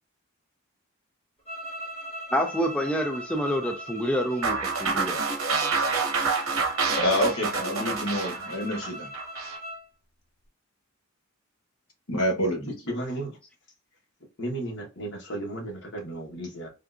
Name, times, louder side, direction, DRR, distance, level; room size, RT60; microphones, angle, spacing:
sound 1, 1.4-9.9, equal, 30° left, 1.2 m, -40 dB
voice 1, 2.3-5.2, equal, 5° left, 0.3 m, -27 dB
sound 2, 4.4-9.6, right 4 dB, 75° right, 0.9 m, -27 dB
voice 2, 7.0-9.1 12.1-12.8, equal, 75° left, 1.0 m, -27 dB
voice 3, 12.9-13.3 14.4-16.7, right 1 dB, 55° left, 1.1 m, -34 dB
3.7 x 2.3 x 2.3 m
head